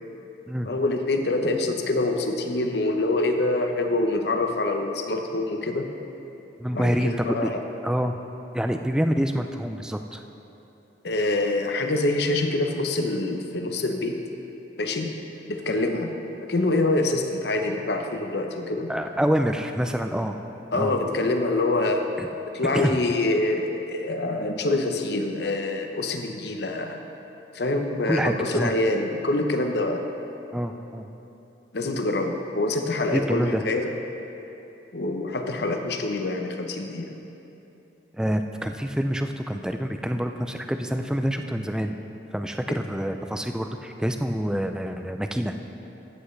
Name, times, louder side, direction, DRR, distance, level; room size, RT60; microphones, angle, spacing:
voice 1, 0.6-5.9 6.7-7.6 11.0-14.2 14.8-15.2 15.5-18.9 20.7-22.1 22.5-27.0 27.5-30.0 31.7-33.9 34.9-37.1 42.7-42.8, left 2 dB, 65° left, 5 dB, 0.7 m, -25 dB
voice 2, 6.6-7.5 7.8-8.1 8.5-10.2 18.9-20.4 20.7-21.0 22.2-22.3 22.7-22.9 28.1-28.7 30.5-31.1 33.1-33.6 38.2-42.0 42.3-45.5, equal, 5° right, 6 dB, 0.3 m, -26 dB
14.0 x 8.1 x 3.2 m, 2.9 s
head